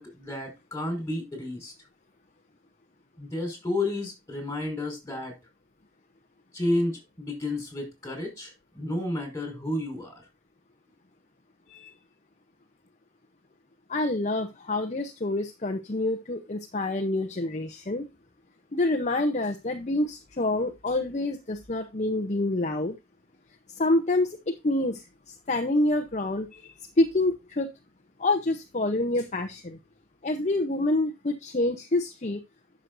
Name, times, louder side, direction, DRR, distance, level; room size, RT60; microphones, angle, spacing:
voice 1, 0.0-1.7 3.2-5.3 6.5-10.2, left 1 dB, 15° left, 3 dB, 5.1 m, -31 dB
voice 2, 13.9-18.1 18.7-23.0 23.7-27.7 28.2-29.8 30.2-32.4, left 2 dB, 35° left, 4 dB, 0.8 m, -27 dB
12.5 x 6.3 x 2.6 m, 0.23 s
head